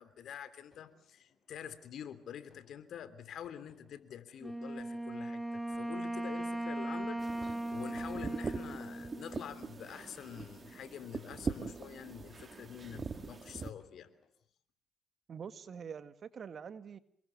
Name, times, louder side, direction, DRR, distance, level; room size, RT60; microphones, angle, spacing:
voice 1, 0.0-14.1, left 9 dB, 70° left, 14 dB, 3.3 m, -47 dB
sound 1, 0.7-14.3, left 5 dB, 55° left, 7.4 m, -68 dB
Wind instrument woodwind instrument, 4.4-9.9, right 1 dB, 5° right, 1.2 m, -38 dB
sound 2, 7.2-13.7, right 4 dB, 35° right, 2.3 m, -42 dB
voice 2, 15.3-17.0, right 7 dB, 50° right, 12 dB, 2.0 m, -45 dB
29.5 x 22.0 x 7.1 m, 0.64 s
cardioid pair, 90°, 0 cm